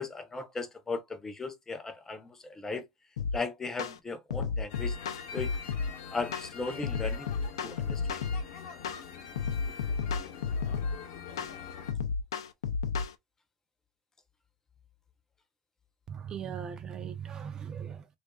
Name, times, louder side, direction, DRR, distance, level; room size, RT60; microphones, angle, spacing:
voice 1, 0.0-2.9 3.3-5.0 5.3-5.7 6.1-7.3 7.6-8.2, left 3 dB, 20° left, 0.6 m, -37 dB
sound 1, 3.2-3.4 3.8-4.0 4.3-5.9 6.3-6.5 6.8-8.4 8.8-9.0 9.4-11.0 11.4-11.5 11.9-13.1, left 5 dB, 90° left, 0.4 m, -32 dB
sound 2, 4.7-11.9, left 6 dB, 70° left, 0.8 m, -44 dB
voice 2, 16.1-18.1, right 8 dB, 30° right, 0.4 m, -39 dB
2.5 x 2.4 x 2.2 m
hypercardioid pair, 100°, 3 cm